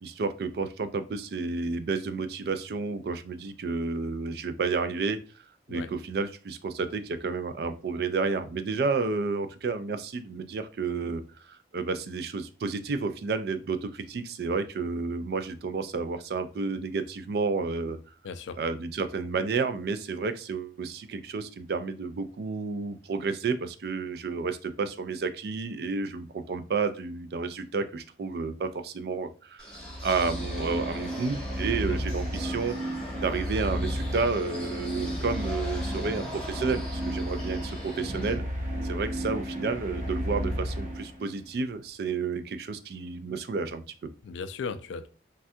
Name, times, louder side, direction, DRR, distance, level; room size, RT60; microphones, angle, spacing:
voice 1, 0.0-5.2 5.7-18.0 18.6-32.9 33.2-38.4 38.8-44.1, right 4 dB, 60° right, 10 dB, 0.3 m, -31 dB
voice 2, 18.2-18.6 31.8-32.0 44.2-45.1, left 5 dB, 90° left, 12 dB, 0.3 m, -36 dB
sound 1, 29.6-38.3, left 1 dB, 5° left, 0.9 m, -42 dB
sound 2, 29.7-41.4, equal, 45° right, 0.8 m, -33 dB
3.3 x 2.2 x 2.6 m, 0.37 s
head